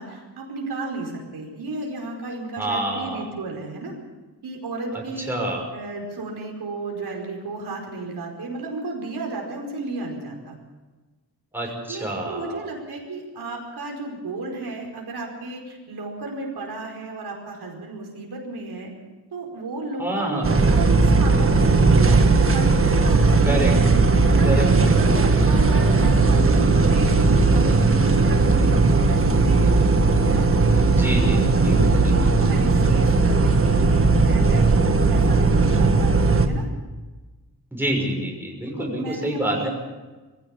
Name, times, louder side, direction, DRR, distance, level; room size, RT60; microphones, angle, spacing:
voice 1, 0.0-4.0 4.4-5.3 5.7-10.6 11.6-18.9 19.3-23.7 24.3-29.8 30.3-30.5 31.3-36.6 38.6-39.7, right 2 dB, 70° right, 0 dB, 5.0 m, -33 dB
voice 2, 2.6-3.2 5.3-5.6 11.5-12.6 20.0-20.6 23.4-23.7 24.4-25.4 30.8-32.3 37.7-39.7, right 1 dB, 5° right, -1 dB, 6.0 m, -27 dB
sound 1, 20.4-36.5, right 3 dB, 35° right, 1.7 m, -17 dB
22.0 x 16.5 x 7.4 m, 1.2 s
wide cardioid pair, 125°, 40 cm